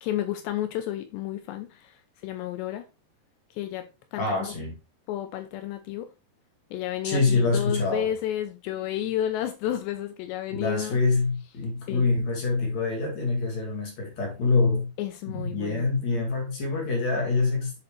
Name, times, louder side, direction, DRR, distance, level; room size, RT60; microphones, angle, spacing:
voice 1, 0.0-2.0 2.2-2.8 3.5-4.5 5.1-6.1 6.7-11.0 11.9-12.1 15.0-15.9, left 12 dB, 80° left, 2.8 m, -31 dB
voice 2, 4.2-4.8 7.0-8.1 10.5-14.9 15.2-17.7, left 3 dB, 45° left, 2.8 m, -25 dB
8.2 x 6.8 x 3.3 m
omnidirectional pair, 5.2 m